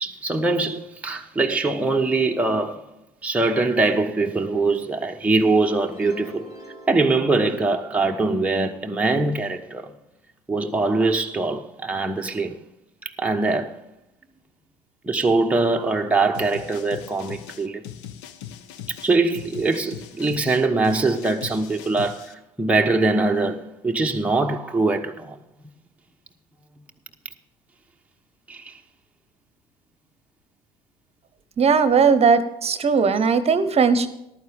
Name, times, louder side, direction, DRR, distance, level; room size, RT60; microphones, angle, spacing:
voice 1, 0.0-2.9 3.2-6.5 6.9-9.9 10.5-12.6 13.0-13.8 15.0-17.9 18.9-25.4 28.5-28.7, right 3 dB, 5° right, 1.0 m, -22 dB
sound 1, 5.3-8.1, right 1 dB, 40° left, 5.2 m, -42 dB
sound 2, 16.3-22.3, left 10 dB, 65° left, 0.9 m, -39 dB
voice 2, 31.6-34.1, right 5 dB, 30° right, 1.0 m, -18 dB
14.0 x 12.0 x 3.5 m
hypercardioid pair, 70°, 20 cm